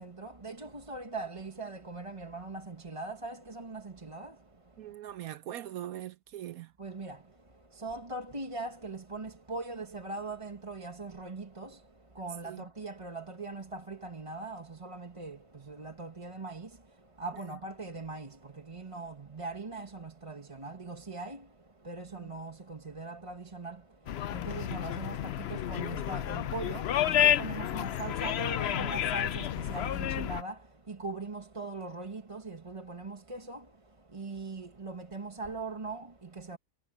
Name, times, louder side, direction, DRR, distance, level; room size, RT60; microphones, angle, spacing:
voice 1, 0.0-4.9 6.8-36.6, right 3 dB, 20° right, 1.4 m, -41 dB
voice 2, 4.8-6.7 12.4-12.6 22.1-22.3 24.6-24.7, right 12 dB, 70° right, 1.0 m, -42 dB
sound 1, 24.1-30.4, left 11 dB, 65° left, 0.6 m, -30 dB
omnidirectional pair, 1.7 m